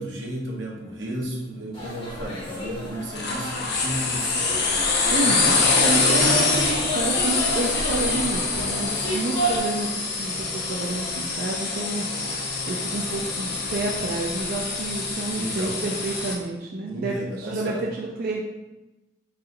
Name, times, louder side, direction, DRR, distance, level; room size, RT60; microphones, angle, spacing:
voice 1, 0.0-4.5 15.1-15.8 16.9-17.8, right 1 dB, 85° right, -2 dB, 1.0 m, -33 dB
sound 1, 1.7-9.6, equal, 25° left, 1.3 m, -31 dB
sound 2, 3.1-16.4, left 4 dB, 60° left, 0.7 m, -25 dB
voice 2, 5.1-9.9 10.2-12.4 12.7-18.4, right 2 dB, 50° right, -1 dB, 0.4 m, -29 dB
4.1 x 2.6 x 3.8 m, 1.0 s
head